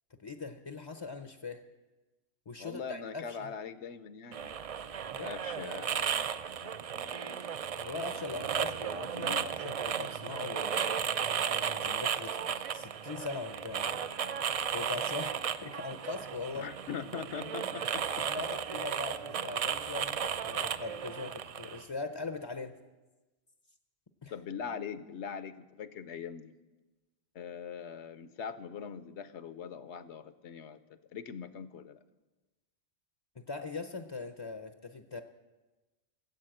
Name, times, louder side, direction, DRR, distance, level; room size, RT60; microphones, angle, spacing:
voice 1, 0.2-1.6 2.5-3.5 5.1-5.3 7.8-11.0 11.2-14.1 14.7-16.7 18.3-22.7 24.2-24.3 33.4-35.2, left 4 dB, 35° left, 7 dB, 0.5 m, -41 dB
voice 2, 2.6-4.5 5.2-6.3 6.6-7.4 9.1-9.5 16.5-18.3 24.3-26.5 27.3-30.8 31.1-32.0, left 7 dB, 85° left, 12 dB, 1.0 m, -42 dB
sound 1, 4.3-21.8, right 8 dB, 60° right, 0.3 m, -35 dB
14.5 x 8.0 x 7.8 m, 1.2 s
omnidirectional pair, 1.1 m